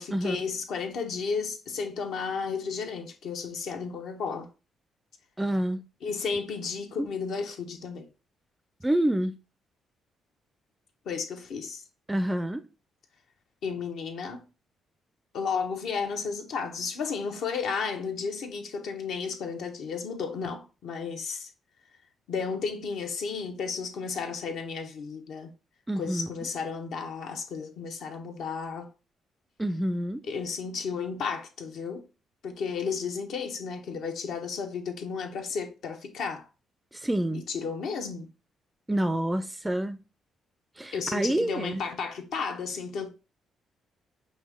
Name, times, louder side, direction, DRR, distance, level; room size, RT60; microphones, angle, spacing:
voice 1, 0.0-4.5 6.0-8.1 11.0-11.8 13.6-14.4 15.3-21.5 22.3-25.5 26.0-28.9 30.3-32.0 32.4-36.5 37.3-38.3 40.9-43.1, left 5 dB, 75° left, 1.0 m, -33 dB
voice 2, 5.4-5.8 7.0-7.1 8.8-9.3 12.1-12.7 25.9-26.3 29.6-30.2 36.9-37.4 38.9-40.0 40.8-41.8, right 1 dB, 10° right, 0.3 m, -27 dB
5.4 x 2.7 x 3.4 m
cardioid pair, 90°, 0 cm